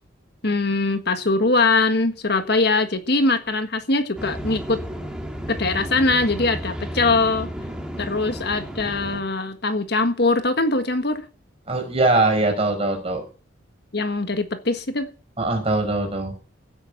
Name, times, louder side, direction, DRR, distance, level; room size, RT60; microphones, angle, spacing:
voice 1, 0.4-4.8 5.5-7.5 8.0-11.2 13.9-15.1, left 3 dB, 55° left, 1.6 m, -22 dB
sound 1, 4.1-9.2, equal, 5° right, 2.4 m, -33 dB
voice 2, 11.7-13.2 15.4-16.3, right 2 dB, 30° right, 5.6 m, -21 dB
16.0 x 9.1 x 7.9 m
head